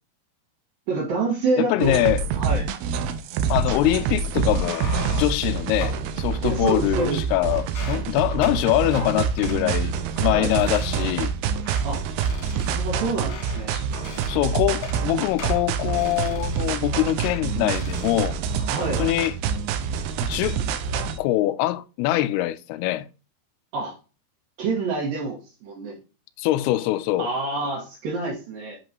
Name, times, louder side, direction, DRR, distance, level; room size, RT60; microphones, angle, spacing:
voice 1, 0.9-2.0 2.4-2.7 6.4-7.2 10.3-10.5 11.8-12.0 12.7-13.7 18.7-19.1 23.7-23.9 24.6-26.0 27.2-28.8, right 3 dB, 65° right, 3.3 m, -27 dB
voice 2, 1.6-2.2 3.5-4.8 5.1-9.9 10.2-11.3 13.7-13.8 14.3-18.4 18.8-19.4 20.2-20.6 21.2-23.1 26.4-27.3, left 15 dB, 85° left, 2.5 m, -23 dB
sound 1, 1.8-21.2, right 6 dB, 80° right, 2.7 m, -26 dB
sound 2, 4.3-5.4 5.8-6.1 6.7-7.3 7.6-8.1 8.4-8.6 8.9-9.1 9.4-9.6 10.1-10.2 10.5-11.3 11.7-11.9 12.2-13.7 13.9-14.4 14.7-15.1 15.4-16.8 17.2-17.4 17.7-18.2 18.6-18.9, left 3 dB, 60° left, 3.0 m, -40 dB
8.3 x 5.3 x 2.9 m
omnidirectional pair, 4.6 m